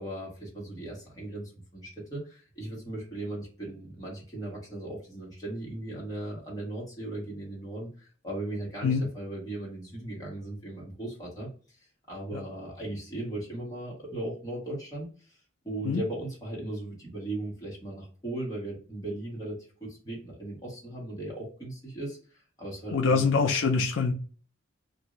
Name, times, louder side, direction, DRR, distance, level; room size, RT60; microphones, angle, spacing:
voice 1, 0.0-15.4 15.6-23.3, right 1 dB, 20° left, -4 dB, 1.4 m, -38 dB
voice 2, 22.9-24.1, left 4 dB, 80° left, 5 dB, 0.4 m, -24 dB
2.6 x 2.6 x 3.0 m, 0.40 s
head